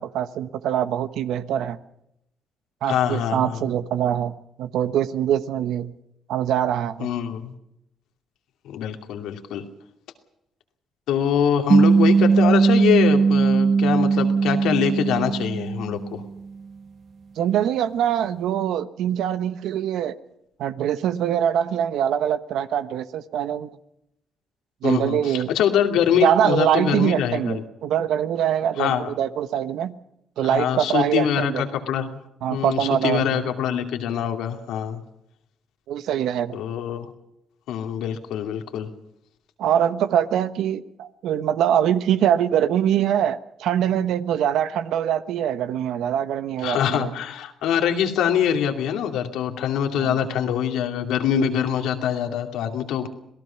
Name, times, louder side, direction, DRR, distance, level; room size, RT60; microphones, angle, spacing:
voice 1, 0.0-1.8 2.8-5.9 6.3-7.1 17.4-20.2 20.6-23.7 24.8-25.5 26.2-30.0 30.4-31.6 32.4-33.4 35.9-36.6 39.6-47.1 50.0-50.3, right 10 dB, 85° right, 12 dB, 1.2 m, -23 dB
voice 2, 2.9-3.6 7.0-7.5 8.6-9.6 11.1-16.2 24.8-27.6 28.8-29.1 30.4-32.2 32.5-35.0 36.5-37.1 37.7-38.9 46.6-53.1, left 9 dB, 90° left, 5 dB, 2.6 m, -24 dB
sound 1, 11.7-16.3, right 5 dB, 50° right, 1.3 m, -19 dB
27.0 x 18.0 x 5.8 m, 0.80 s
cardioid pair, 90°, 0 cm